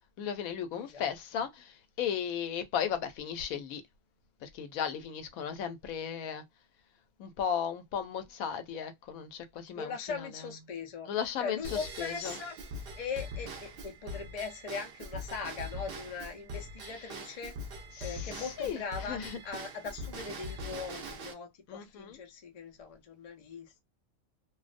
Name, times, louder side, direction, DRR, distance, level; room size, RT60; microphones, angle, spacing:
voice 1, 0.2-3.8 4.4-6.4 7.2-10.3 11.1-12.4 16.8-17.1 18.0-19.4 21.7-22.2, left 8 dB, 85° left, 1.0 m, -36 dB
voice 2, 9.8-11.1 11.4-12.6 13.0-17.6 18.0-23.8, left 5 dB, 65° left, 0.3 m, -40 dB
Drum kit / Drum / Bell, 11.6-21.3, equal, 65° right, 0.5 m, -42 dB
2.5 x 2.0 x 2.4 m
omnidirectional pair, 1.4 m